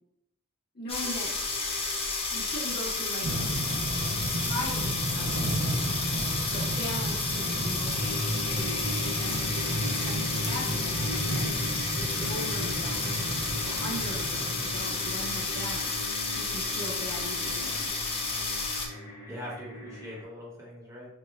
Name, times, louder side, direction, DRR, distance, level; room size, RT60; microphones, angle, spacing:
voice 1, 0.7-1.3 2.3-3.7 4.4-8.1 8.5-9.3 9.8-13.3 13.6-16.0 16.3-17.9, equal, 50° left, -7 dB, 1.4 m, -40 dB
sound 1, 0.9-18.9, left 3 dB, 25° left, 0.6 m, -31 dB
sound 2, 1.0-20.2, left 1 dB, 85° left, 1.4 m, -39 dB
sound 3, 3.2-14.7, right 1 dB, 70° right, 0.7 m, -33 dB
voice 2, 19.0-21.1, left 1 dB, 15° right, -6 dB, 1.1 m, -42 dB
5.8 x 2.2 x 2.4 m, 0.84 s
head